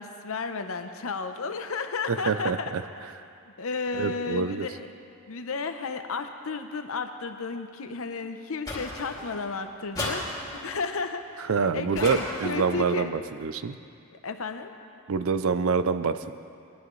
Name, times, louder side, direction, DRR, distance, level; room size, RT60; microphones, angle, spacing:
voice 1, 0.0-2.7 3.6-4.9 5.3-13.1 14.1-14.7, left 4 dB, 70° left, 7 dB, 0.7 m, -33 dB
voice 2, 2.3-2.6 3.9-4.7 11.5-13.8 15.1-16.3, right 5 dB, 65° right, 12 dB, 0.5 m, -26 dB
sound 1, 8.7-9.5 9.9-10.8 12.0-12.8, left 1 dB, 15° left, 2.4 m, -34 dB
21.0 x 11.0 x 3.2 m, 2.5 s
head